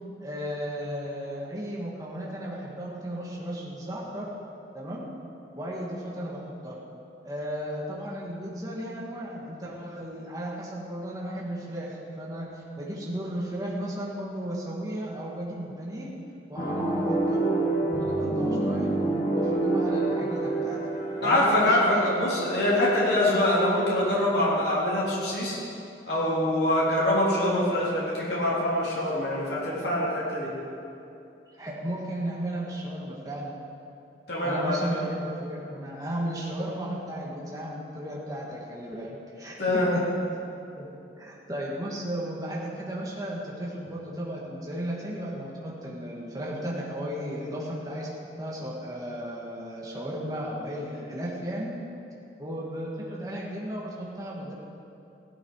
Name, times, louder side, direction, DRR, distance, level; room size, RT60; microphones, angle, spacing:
voice 1, 0.2-4.3 4.7-5.0 5.5-6.8 7.2-11.9 12.2-16.1 16.5-17.5 17.8-18.9 19.3-20.8 21.2-22.3 31.6-33.6 34.4-40.0 40.8-40.9 41.2-48.1 48.4-51.7 52.4-54.5, equal, 20° right, -5 dB, 2.0 m, -34 dB
sound 1, 16.6-22.4, right 2 dB, 30° left, 1.9 m, -27 dB
voice 2, 21.2-25.6 26.1-30.5 34.3-35.0 39.6-40.0, left 1 dB, 70° left, -7 dB, 3.5 m, -24 dB
16.5 x 12.0 x 4.9 m, 2.7 s
head